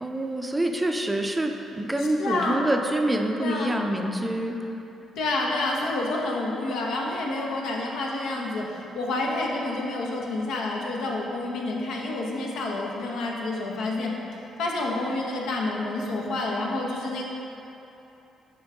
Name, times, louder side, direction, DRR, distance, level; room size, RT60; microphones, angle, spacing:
voice 1, 0.0-4.6, right 1 dB, 15° right, 4 dB, 0.5 m, -26 dB
voice 2, 2.0-2.6 3.4-3.8 5.2-14.1 14.6-17.2, left 2 dB, 80° left, -2 dB, 0.9 m, -29 dB
7.1 x 4.4 x 3.6 m, 3.0 s
cardioid pair, 90°, 0 cm